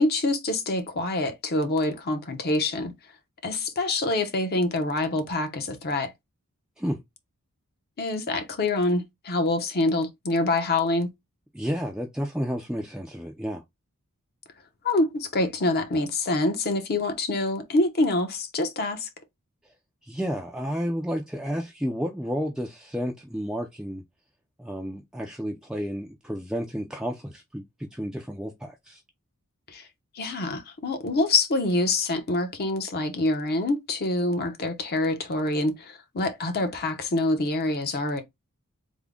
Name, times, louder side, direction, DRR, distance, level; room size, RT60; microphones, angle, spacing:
voice 1, 0.0-2.9 3.4-6.1 8.0-11.1 14.8-19.1 29.7-29.9 30.1-38.2, left 2 dB, 45° left, 0.7 m, -26 dB
voice 2, 11.5-13.6 20.0-24.0 24.6-29.0, equal, 5° right, 0.3 m, -31 dB
3.5 x 2.0 x 3.6 m
head